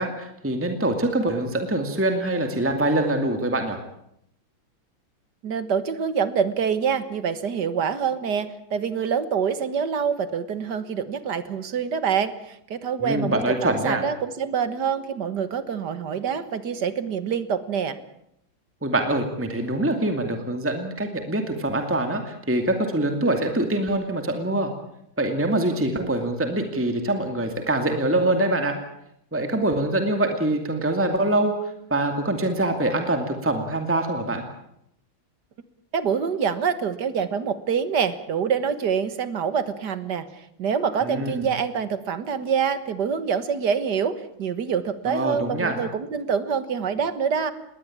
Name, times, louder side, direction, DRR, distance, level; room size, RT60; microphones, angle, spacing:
voice 1, 0.0-3.8 13.0-14.0 18.8-24.7 25.2-28.7 29.3-34.4 41.0-41.4 45.1-45.8, right 1 dB, 5° right, 5 dB, 2.2 m, -24 dB
voice 2, 5.4-18.0 35.9-47.5, right 7 dB, 60° right, 13 dB, 1.9 m, -26 dB
20.5 x 18.5 x 8.7 m, 0.76 s
omnidirectional pair, 2.2 m